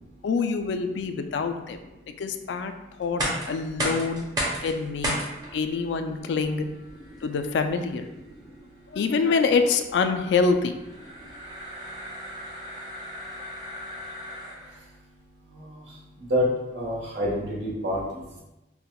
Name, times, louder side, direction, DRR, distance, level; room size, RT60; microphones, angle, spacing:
voice 1, 0.2-1.8 2.2-2.7 3.0-3.2 3.5-4.2 4.6-5.2 5.5-6.7 7.2-8.1 8.9-10.7, left 4 dB, 75° left, 7 dB, 0.3 m, -25 dB
sound 1, 3.0-14.9, equal, 20° right, 0.7 m, -35 dB
voice 2, 16.3-18.4, left 1 dB, 85° right, -5 dB, 1.1 m, -27 dB
5.6 x 2.1 x 2.2 m, 0.99 s
head